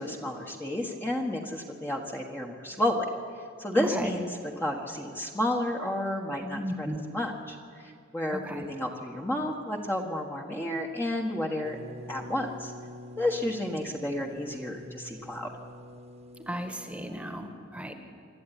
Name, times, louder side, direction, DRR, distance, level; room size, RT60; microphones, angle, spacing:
voice 1, 0.0-3.1 3.6-4.3 4.6-11.8 12.1-12.7 13.2-15.5, left 1 dB, 10° left, 1 dB, 1.4 m, -31 dB
voice 2, 3.7-4.1 6.4-7.0 8.3-8.7 16.5-17.9, equal, 5° right, 6 dB, 1.6 m, -35 dB
sound 1, 11.6-17.1, left 1 dB, 30° right, 1.4 m, -46 dB
25.5 x 13.0 x 10.0 m, 2.3 s
head